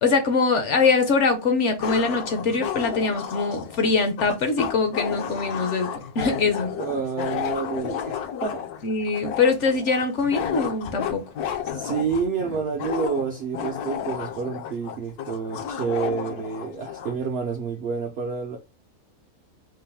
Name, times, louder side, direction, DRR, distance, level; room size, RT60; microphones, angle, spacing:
voice 1, 0.0-6.7 8.8-11.2, left 4 dB, 60° left, 0.8 m, -23 dB
sound 1, 0.8-0.9 1.8-17.2, left 8 dB, 75° left, 1.1 m, -32 dB
voice 2, 6.8-8.7 11.6-18.6, right 6 dB, 65° right, 0.6 m, -29 dB
3.9 x 2.5 x 3.4 m
omnidirectional pair, 1.7 m